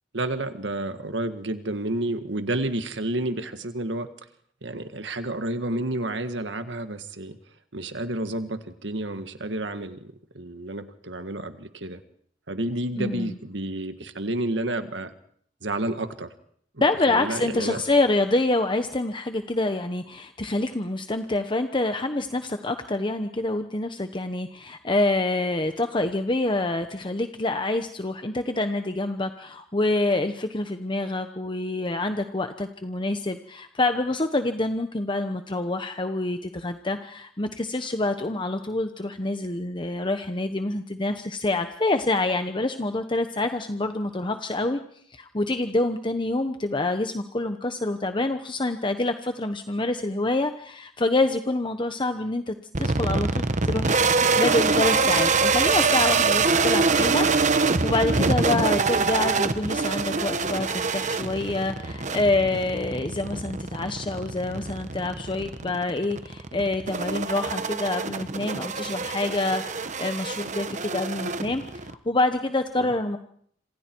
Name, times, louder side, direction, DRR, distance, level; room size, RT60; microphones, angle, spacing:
voice 1, 0.1-4.1 4.6-7.4 7.7-12.0 12.5-15.1 15.6-16.3 16.7-17.8 72.8-72.9, right 1 dB, 70° right, 9 dB, 1.7 m, -30 dB
voice 2, 13.0-13.4 16.8-44.8 45.1-57.3 57.5-73.2, left 2 dB, 25° left, 8 dB, 1.0 m, -27 dB
sound 1, 52.7-71.9, right 4 dB, 40° right, 1.1 m, -25 dB
27.0 x 26.5 x 4.6 m, 0.64 s
head